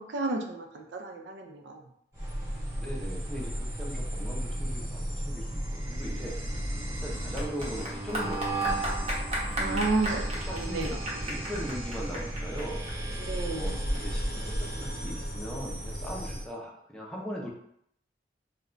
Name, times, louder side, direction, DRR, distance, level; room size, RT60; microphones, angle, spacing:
voice 1, 0.1-1.8 9.6-11.0 13.2-13.8, right 3 dB, 80° right, 3 dB, 0.4 m, -32 dB
sound 1, 2.1-16.5, right 1 dB, 15° right, 0.9 m, -34 dB
voice 2, 2.8-6.4 6.9-8.8 9.5-9.8 10.5-12.9 13.5-17.5, equal, 5° left, -3 dB, 0.5 m, -39 dB
Clapping / Applause, 6.3-15.3, equal, 40° right, 0.7 m, -35 dB
2.3 x 2.1 x 3.6 m, 0.71 s
head